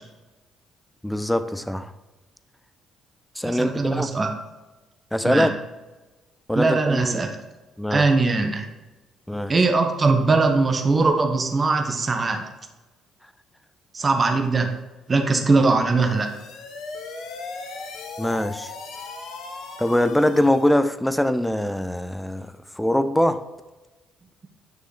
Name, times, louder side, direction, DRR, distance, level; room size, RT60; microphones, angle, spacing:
voice 1, 1.0-1.9 3.4-4.1 5.1-5.5 6.5-7.3 7.8-8.1 9.3-9.5 18.2-18.7 19.8-23.4, left 1 dB, 5° left, 12 dB, 0.7 m, -23 dB
voice 2, 3.4-4.3 5.2-5.5 6.5-7.3 7.9-8.7 9.5-12.5 13.9-14.7 15.1-16.3, right 3 dB, 35° right, 5 dB, 1.3 m, -21 dB
sound 1, 16.0-20.8, left 4 dB, 60° left, 1.1 m, -37 dB
9.5 x 6.2 x 3.4 m, 1.1 s
figure-of-eight pair, 45°, 0 cm